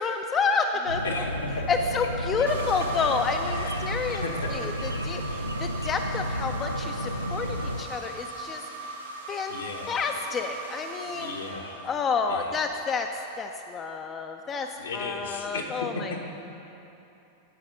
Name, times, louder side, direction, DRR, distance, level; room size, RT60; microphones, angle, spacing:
voice 1, 0.0-1.0 1.7-8.9 9.3-9.5 9.9-11.3 11.8-13.1 13.4-16.2, left 5 dB, 25° left, 4 dB, 0.4 m, -29 dB
sound 1, 0.9-7.8, equal, 90° right, 0.4 m, -32 dB
voice 2, 1.0-1.7 2.4-2.5 3.0-3.1 3.4-4.7 5.0-5.4 9.5-10.0 11.1-11.8 12.3-12.5 14.8-16.2, left 3 dB, 65° left, 1 dB, 1.0 m, -36 dB
sound 2, 2.5-12.4, right 2 dB, 70° right, 1.0 m, -39 dB
11.0 x 4.9 x 6.7 m, 2.9 s
figure-of-eight pair, 90°, 0 cm